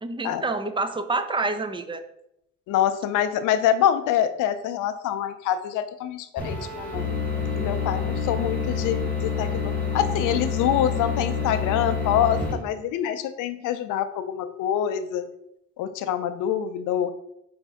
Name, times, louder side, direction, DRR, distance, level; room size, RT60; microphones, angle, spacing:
voice 1, 0.0-2.0, right 3 dB, 15° right, 9 dB, 0.4 m, -27 dB
voice 2, 2.7-7.1 7.5-15.3 15.8-17.1, left 10 dB, 85° left, 11 dB, 0.5 m, -25 dB
sound 1, 6.4-12.5, left 5 dB, 5° left, 1.6 m, -27 dB
4.1 x 2.6 x 4.7 m, 0.79 s
cardioid pair, 90°, 30 cm